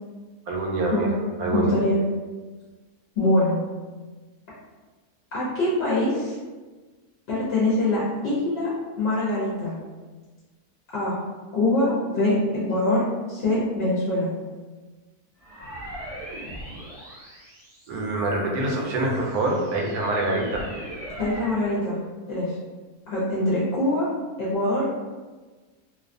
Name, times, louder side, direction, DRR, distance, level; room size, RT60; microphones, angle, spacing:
voice 1, 0.5-1.1 1.4-1.8 17.9-20.7, right 2 dB, 80° right, -1 dB, 1.0 m, -25 dB
voice 2, 1.5-2.0 3.2-3.6 5.3-6.3 7.3-9.7 10.9-11.2 11.5-14.3 21.2-22.0 22.3-22.6 23.1-24.1 24.4-24.8, left 1 dB, 55° left, -8 dB, 0.7 m, -23 dB
sound 1, 15.4-18.3 18.9-21.7, right 1 dB, 30° right, 0.7 m, -40 dB
2.5 x 2.3 x 2.5 m, 1.3 s
omnidirectional pair, 1.6 m